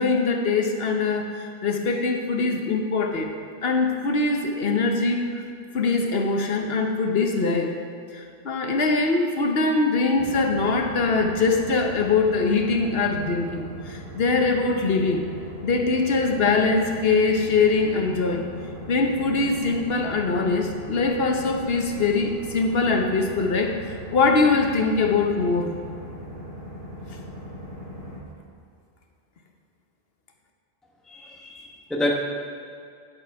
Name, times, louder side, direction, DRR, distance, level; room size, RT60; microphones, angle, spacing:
voice 1, 0.0-3.3 3.6-5.4 5.7-7.8 8.1-15.2 15.6-18.5 18.9-25.8 27.1-27.2, left 3 dB, 70° left, 3 dB, 1.2 m, -22 dB
sound 1, 10.2-28.2, equal, 85° right, 3.0 m, -39 dB
voice 2, 31.1-32.1, left 1 dB, ahead, -1 dB, 0.9 m, -28 dB
10.0 x 8.0 x 4.7 m, 2.4 s
omnidirectional pair, 1.0 m